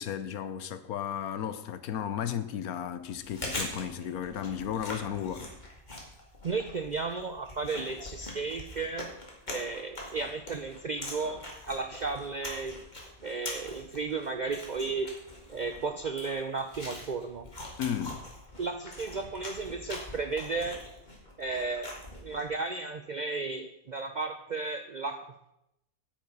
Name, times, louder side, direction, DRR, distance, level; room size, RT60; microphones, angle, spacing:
voice 1, 0.0-5.5 17.8-18.2, left 9 dB, 85° left, 1.3 m, -34 dB
Chewing mastication, 3.1-22.6, left 1 dB, 30° left, 2.3 m, -43 dB
voice 2, 6.4-9.1 9.5-12.8 13.2-15.2 15.5-17.5 18.6-20.8 21.4-25.5, right 4 dB, 75° right, 0.4 m, -34 dB
9.1 x 9.0 x 5.3 m
omnidirectional pair, 1.5 m